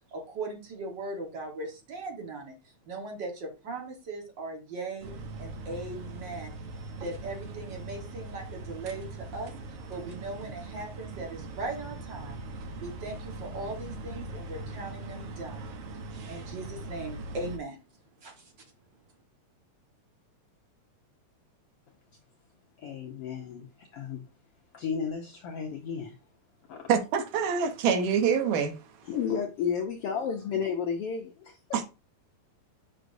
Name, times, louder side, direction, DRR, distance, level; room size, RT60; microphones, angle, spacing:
voice 1, 0.1-2.5 2.9-6.6 7.0-12.4 12.8-15.6 16.2-17.8 18.2-18.5, right 2 dB, 45° right, 1.6 m, -39 dB
sound 1, 5.0-17.6, right 2 dB, 65° right, 1.7 m, -41 dB
voice 2, 22.8-24.2 24.7-26.2 26.7-26.9 29.0-31.6, left 7 dB, 75° left, 1.3 m, -33 dB
voice 3, 26.9-28.8 31.7-31.8, right 7 dB, 90° right, 2.5 m, -25 dB
7.8 x 5.4 x 2.6 m
omnidirectional pair, 3.6 m